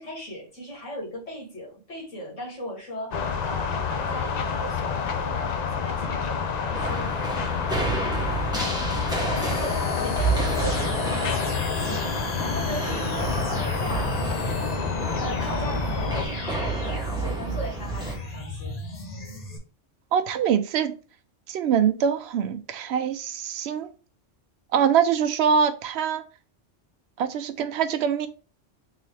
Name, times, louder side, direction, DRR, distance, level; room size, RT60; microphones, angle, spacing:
voice 1, 0.0-7.1 9.2-12.1 12.4-14.1 15.2-18.8, left 1 dB, 90° left, 1.9 m, -37 dB
sound 1, 3.1-16.3, left 6 dB, 65° left, 0.4 m, -29 dB
sound 2, 6.7-18.2, right 3 dB, 5° right, 0.8 m, -30 dB
sound 3, 9.4-19.6, left 2 dB, 40° left, 0.8 m, -33 dB
voice 2, 20.1-20.9 21.5-23.9 24.7-26.2 27.2-28.3, right 7 dB, 70° right, 0.8 m, -24 dB
3.8 x 2.8 x 3.2 m
omnidirectional pair, 1.2 m